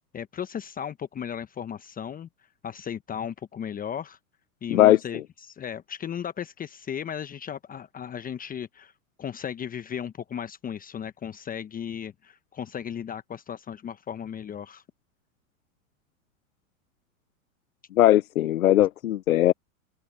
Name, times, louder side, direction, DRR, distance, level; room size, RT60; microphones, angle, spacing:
voice 1, 0.0-2.3 2.6-4.2 4.6-8.9 9.2-14.8, left 8 dB, 20° left, 1.0 m, -35 dB
voice 2, 4.7-5.2 17.9-19.5, left 13 dB, 80° left, 1.0 m, -20 dB
open air
hypercardioid pair, 105°, 41 cm